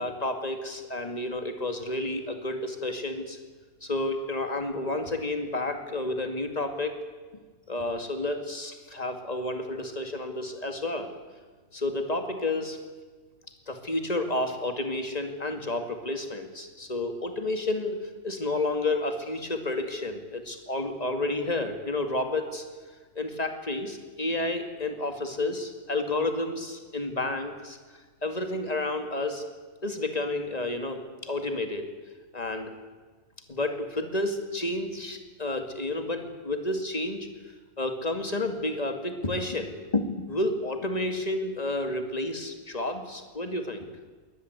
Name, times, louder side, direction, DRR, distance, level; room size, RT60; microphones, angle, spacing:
voice 1, 0.0-3.4 3.8-6.9 7.7-11.1 11.7-12.8 13.7-18.0 18.2-22.6 23.2-27.8 28.2-29.4 29.8-31.9 32.3-32.7 33.5-37.3 37.8-43.9, left 2 dB, 30° left, 6 dB, 2.3 m, -30 dB
22.0 x 18.5 x 8.1 m, 1.4 s
omnidirectional pair, 1.4 m